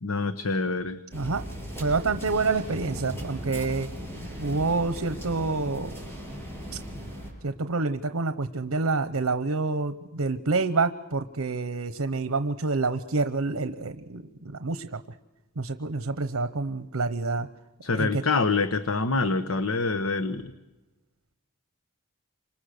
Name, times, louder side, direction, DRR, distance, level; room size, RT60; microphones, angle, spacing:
voice 1, 0.0-1.0 17.8-20.5, left 3 dB, 75° left, 10 dB, 1.1 m, -26 dB
sound 1, 1.1-7.3, equal, 10° left, 7.2 m, -37 dB
voice 2, 1.1-1.5 1.8-3.9 4.4-6.0 6.7-6.8 7.4-15.0 15.6-17.5 18.0-18.2, right 3 dB, 90° right, 10 dB, 1.0 m, -27 dB
29.0 x 26.0 x 6.7 m, 1.1 s
head